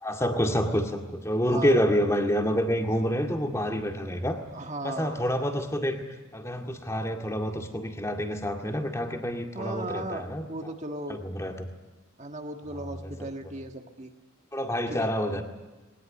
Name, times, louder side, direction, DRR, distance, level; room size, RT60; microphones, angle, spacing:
voice 1, 0.0-4.4 4.8-6.0 6.3-10.4 11.1-11.7 13.0-13.1 14.5-15.4, equal, 15° left, 3 dB, 2.1 m, -27 dB
voice 2, 1.5-1.8 4.5-5.2 9.5-11.2 12.2-14.1 14.9-15.1, right 2 dB, 35° right, 4 dB, 1.6 m, -36 dB
21.0 x 19.5 x 9.7 m, 1.2 s
head